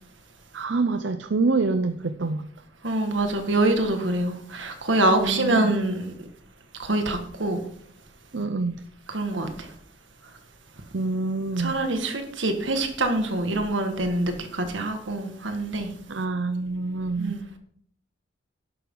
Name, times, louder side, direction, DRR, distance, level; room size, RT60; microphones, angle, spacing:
voice 1, 0.5-2.5 5.1-5.7 8.3-8.8 10.9-11.8 16.1-17.4, right 3 dB, 70° right, 0.6 m, -26 dB
voice 2, 2.8-6.1 6.8-7.6 9.1-9.5 11.6-15.9 17.2-17.4, right 2 dB, 85° right, 1.9 m, -25 dB
12.0 x 11.5 x 3.9 m
head